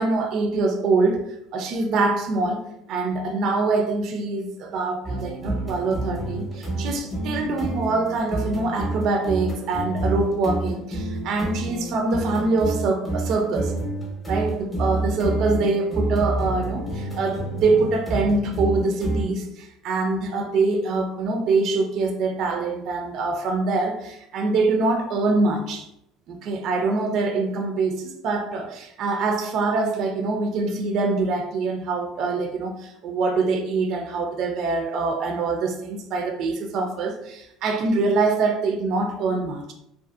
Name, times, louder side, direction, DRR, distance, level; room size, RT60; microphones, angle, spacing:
voice 1, 0.0-13.8 14.3-25.9 26.3-39.7, right 3 dB, 50° right, 0.4 m, -24 dB
sound 1, 5.0-19.2, right 1 dB, 5° left, 0.7 m, -29 dB
2.5 x 2.3 x 2.3 m
cardioid pair, 150°, 0 cm